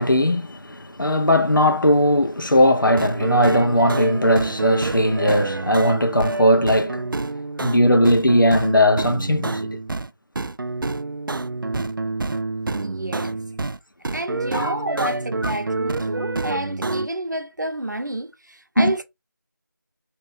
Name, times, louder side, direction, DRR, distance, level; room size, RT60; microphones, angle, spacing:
voice 1, 0.0-7.0 7.6-9.8 14.5-15.1 15.4-15.5 18.8-18.9, left 1 dB, 75° left, 1.0 m, -19 dB
sound 1, 2.8-10.1 10.4-13.8 14.0-17.1, right 3 dB, 85° right, 0.4 m, -27 dB
voice 2, 12.8-13.4 14.1-19.0, right 1 dB, 60° right, 0.7 m, -29 dB
3.0 x 3.0 x 3.7 m
figure-of-eight pair, 175°, 11 cm